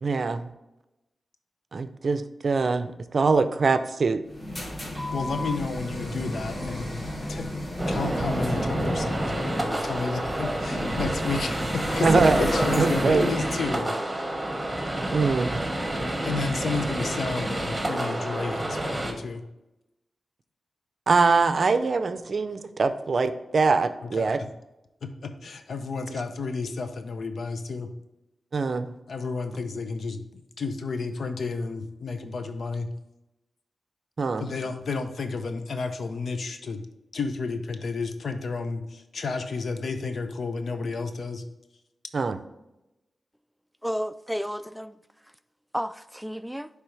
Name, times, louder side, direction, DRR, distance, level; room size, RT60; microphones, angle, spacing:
voice 1, 0.0-0.5 1.7-4.2 12.0-12.5 12.7-13.3 15.1-15.6 21.1-24.4 28.5-28.9 34.2-34.4 42.1-42.4, right 4 dB, 60° right, 11 dB, 0.5 m, -23 dB
sound 1, 4.3-13.6, left 1 dB, 35° left, 2.1 m, -32 dB
voice 2, 5.1-6.9 7.3-14.3 16.2-19.4 24.0-24.3 25.0-27.9 29.1-32.9 34.4-36.8 37.1-41.4, left 4 dB, 75° left, 8 dB, 0.6 m, -32 dB
sound 2, 7.8-19.1, right 1 dB, 20° right, 1.3 m, -29 dB
voice 3, 43.8-45.0 45.7-46.7, equal, ahead, 13 dB, 0.3 m, -32 dB
9.9 x 3.4 x 3.2 m, 0.94 s
cardioid pair, 55°, 0 cm